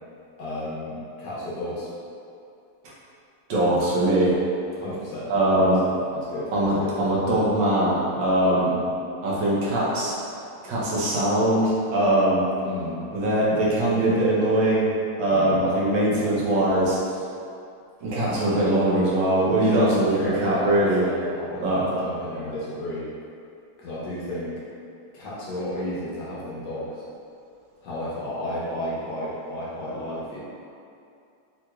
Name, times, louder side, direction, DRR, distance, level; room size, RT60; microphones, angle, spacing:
voice 1, 0.4-1.9 4.8-6.9 8.5-8.8 12.6-13.0 15.3-15.7 19.8-23.1 23.8-24.6 25.1-27.0 27.8-30.4, left 1 dB, 70° left, -7 dB, 1.1 m, -32 dB
voice 2, 3.5-4.3 5.3-5.8 6.5-8.7 9.2-10.1 10.6-12.5 13.1-14.9 15.2-17.0 18.0-21.0 21.6-21.8, right 1 dB, 80° right, -7 dB, 1.4 m, -21 dB
3.6 x 2.9 x 2.2 m, 2.5 s
omnidirectional pair, 2.1 m